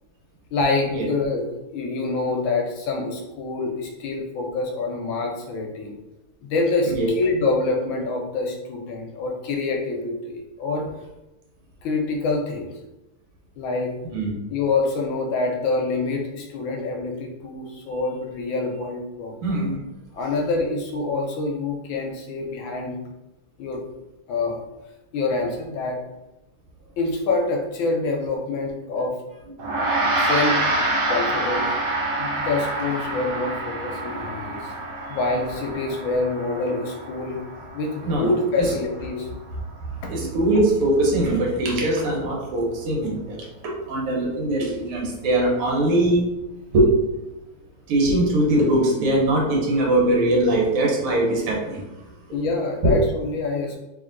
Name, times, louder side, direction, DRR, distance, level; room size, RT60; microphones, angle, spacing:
voice 1, 0.5-1.4 1.7-5.9 6.4-10.9 11.8-12.7 13.6-13.9 14.5-19.3 20.1-23.0 23.6-23.8 24.3-24.6 25.1-26.0 27.0-29.2 30.2-30.6 31.1-31.7 32.2-34.6 35.1-37.4 37.7-39.3 52.3-53.8, left 3 dB, 70° left, 1 dB, 1.3 m, -26 dB
voice 2, 19.4-19.8 34.7-35.1 38.0-38.3 38.6-38.7 39.8-46.2 46.7-46.9 47.9-51.9 52.8-52.9, right 1 dB, 85° right, -1 dB, 1.9 m, -21 dB
Gong, 29.6-39.2, right 2 dB, 60° right, 1.2 m, -27 dB
3.6 x 3.0 x 3.7 m, 0.98 s
omnidirectional pair, 2.4 m